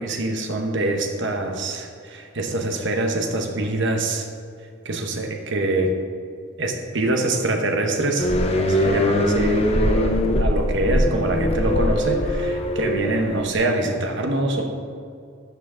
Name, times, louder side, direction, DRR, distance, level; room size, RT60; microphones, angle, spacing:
voice 1, 0.0-4.3 4.8-6.0 6.6-14.6, right 2 dB, 60° right, 3 dB, 1.0 m, -24 dB
sound 1, 8.2-13.5, left 1 dB, 30° left, 0.6 m, -21 dB
12.5 x 5.7 x 3.7 m, 2.3 s
head